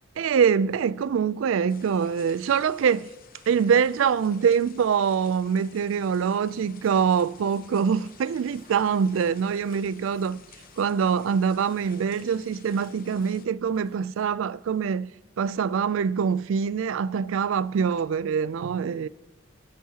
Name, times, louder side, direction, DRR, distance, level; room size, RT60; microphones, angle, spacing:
voice 1, 0.2-3.1 3.5-10.4 10.8-15.1 15.4-19.1, right 7 dB, 65° right, 0.3 m, -24 dB
sound 1, 1.7-13.5, left 7 dB, 45° left, 0.8 m, -53 dB
sound 2, 6.8-14.3, right 1 dB, 40° right, 3.2 m, -58 dB
26.0 x 9.4 x 2.9 m
head